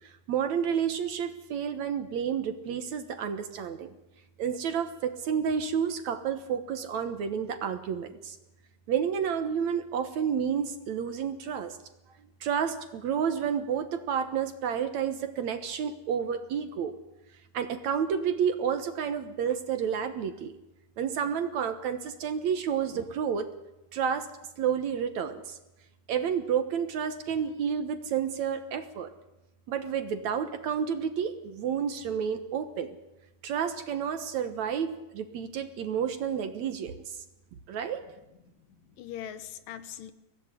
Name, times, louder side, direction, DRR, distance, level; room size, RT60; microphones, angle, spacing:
voice 1, 0.0-3.9 4.4-8.4 8.9-11.8 12.4-17.0 17.5-20.5 21.0-23.5 23.9-24.3 24.6-25.6 26.1-29.1 29.7-33.0 33.4-37.2 37.7-38.1, right 7 dB, 60° right, 9 dB, 2.3 m, -30 dB
voice 2, 38.5-40.1, left 10 dB, 75° left, 12 dB, 3.0 m, -42 dB
24.0 x 17.5 x 9.8 m, 0.97 s
omnidirectional pair, 4.1 m